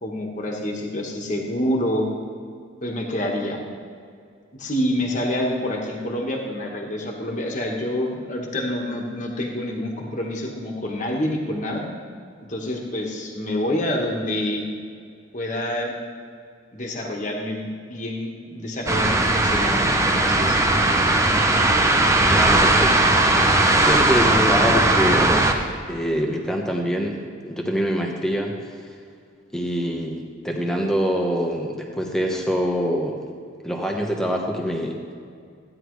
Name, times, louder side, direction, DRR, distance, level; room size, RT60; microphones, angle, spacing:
voice 1, 0.0-2.1 2.8-3.6 4.6-11.9 12.5-14.7 15.3-15.9 16.7-20.8, left 1 dB, 35° left, 0 dB, 1.4 m, -27 dB
sound 1, 18.9-25.5, right 2 dB, 15° right, 0.6 m, -18 dB
voice 2, 22.4-25.5 25.9-28.9 29.5-33.2 33.6-35.0, equal, 5° left, 0 dB, 1.1 m, -25 dB
15.0 x 9.7 x 3.2 m, 2.3 s
head